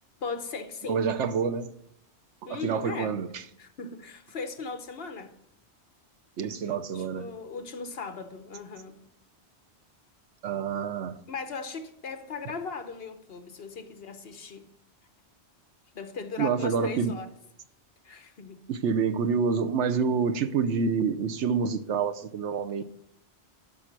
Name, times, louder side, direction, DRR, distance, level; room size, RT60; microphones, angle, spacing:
voice 1, 0.2-1.0 2.5-3.1 3.6-5.3 6.6-9.0 11.3-14.7 15.9-17.3 18.0-18.6, left 4 dB, 60° left, 1.1 m, -38 dB
voice 2, 0.8-1.7 2.4-3.4 6.4-7.3 10.4-11.2 16.4-17.1 18.7-22.8, right 6 dB, 85° right, 1.1 m, -27 dB
12.5 x 5.7 x 6.0 m
omnidirectional pair, 1.2 m